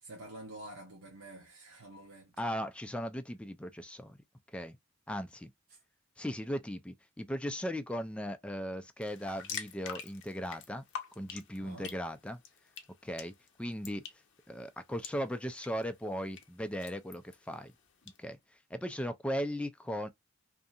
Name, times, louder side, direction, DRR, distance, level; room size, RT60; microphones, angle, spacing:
voice 1, 0.0-2.4 5.7-5.8 11.6-12.0, right 1 dB, 80° right, 0.8 m, -48 dB
voice 2, 2.4-4.2 4.5-4.8 5.1-5.5 6.2-10.8 11.2-12.4 13.0-13.3 13.6-14.1 14.5-17.7 18.2-18.4 18.7-20.1, equal, 5° left, 0.3 m, -37 dB
sound 1, 9.0-18.2, left 7 dB, 60° left, 0.6 m, -48 dB
2.7 x 2.5 x 2.3 m
head